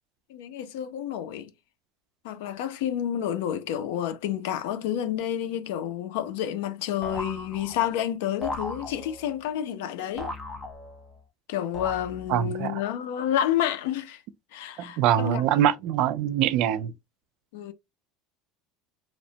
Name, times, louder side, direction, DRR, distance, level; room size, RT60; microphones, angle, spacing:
voice 1, 0.3-1.5 2.2-10.3 11.5-14.2 14.5-15.7 17.5-17.7, left 10 dB, 85° left, 0.4 m, -29 dB
sound 1, 7.0-8.0 8.4-9.4 10.2-11.2 11.7-12.5, left 2 dB, 10° left, 0.5 m, -37 dB
voice 2, 12.3-12.8 15.0-16.9, right 11 dB, 50° right, 0.3 m, -23 dB
2.9 x 2.1 x 2.7 m
cardioid pair, 170°, 0 cm